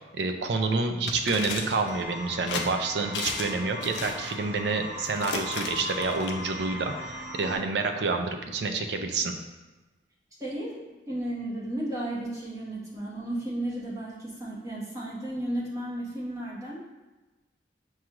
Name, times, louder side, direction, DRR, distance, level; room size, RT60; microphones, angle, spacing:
voice 1, 0.1-9.3, right 3 dB, 75° right, 5 dB, 0.4 m, -28 dB
sound 1, 1.1-1.9 2.5-2.7 3.1-3.6 3.8-4.3 5.0-6.3, left 5 dB, 85° left, 0.4 m, -34 dB
sound 2, 1.8-7.6, left 2 dB, 45° right, 0.9 m, -38 dB
voice 2, 10.4-10.8 11.1-16.8, right 1 dB, 20° right, -8 dB, 1.0 m, -33 dB
6.0 x 2.3 x 2.9 m, 1.2 s
head